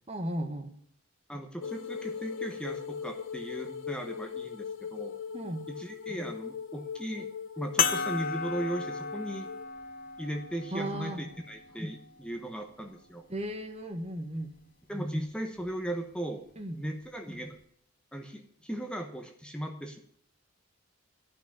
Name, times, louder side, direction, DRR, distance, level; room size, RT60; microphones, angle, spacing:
voice 1, 0.1-0.7 5.3-5.7 10.7-11.2 13.3-14.6 16.6-16.8, right 1 dB, 30° right, 5 dB, 1.4 m, -35 dB
voice 2, 1.3-5.2 5.7-7.3 7.6-9.5 10.2-13.3 14.9-16.4 16.7-17.6 18.1-20.0, right 1 dB, 5° left, 3 dB, 1.0 m, -37 dB
sound 1, 1.6-9.7, left 6 dB, 70° left, 0.8 m, -40 dB
sound 2, 7.8-12.6 13.4-13.5 15.6-15.7, left 6 dB, 40° left, 1.1 m, -34 dB
12.5 x 5.9 x 8.6 m, 0.66 s
head